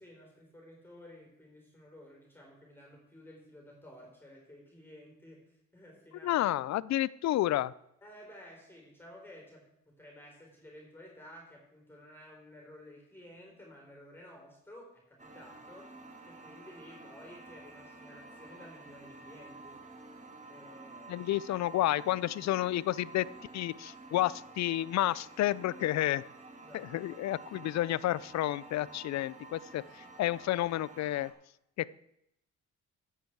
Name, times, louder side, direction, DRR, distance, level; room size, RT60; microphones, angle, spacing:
voice 1, 0.0-6.4 8.0-15.9 16.3-19.8 20.5-21.3 26.6-27.0, left 1 dB, 5° left, 0 dB, 4.3 m, -53 dB
voice 2, 6.2-7.7 21.1-23.3 23.5-26.2 26.7-31.3 31.8-31.9, left 14 dB, 65° left, 20 dB, 0.5 m, -30 dB
sound 1, 15.2-31.3, right 3 dB, 25° right, 1.9 m, -51 dB
13.5 x 8.1 x 4.6 m, 0.80 s
cardioid pair, 90°, 30 cm